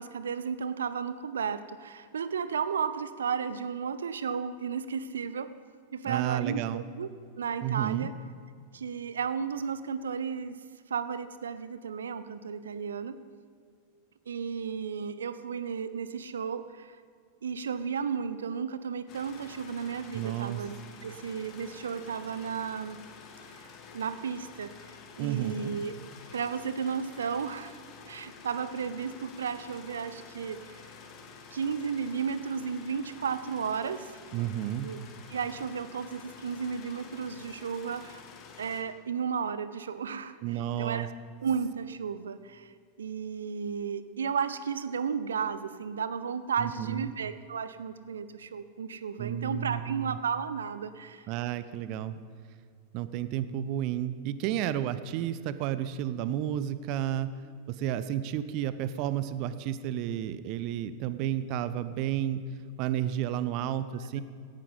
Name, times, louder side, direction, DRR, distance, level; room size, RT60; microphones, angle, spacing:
voice 1, 0.0-5.6 5.9-7.1 7.4-8.1 8.7-13.2 14.3-17.0 17.4-23.0 23.5-23.6 23.9-25.9 26.3-27.8 28.1-30.8 31.5-34.2 34.8-35.0 35.3-38.2 38.6-40.4 40.8-41.1 41.4-51.3 64.0-64.2, right 6 dB, 65° right, 14 dB, 0.9 m, -34 dB
voice 2, 6.0-6.8 7.6-8.1 20.1-20.6 25.2-25.7 34.3-34.9 40.4-41.1 46.6-47.1 49.2-50.2 51.3-52.2 52.9-57.3 57.7-62.4 62.8-64.2, right 11 dB, 45° right, 14 dB, 0.9 m, -31 dB
sound 1, 19.1-38.8, left 5 dB, 35° left, 2.4 m, -49 dB
17.5 x 14.5 x 5.5 m, 2.2 s
figure-of-eight pair, 90°, 0 cm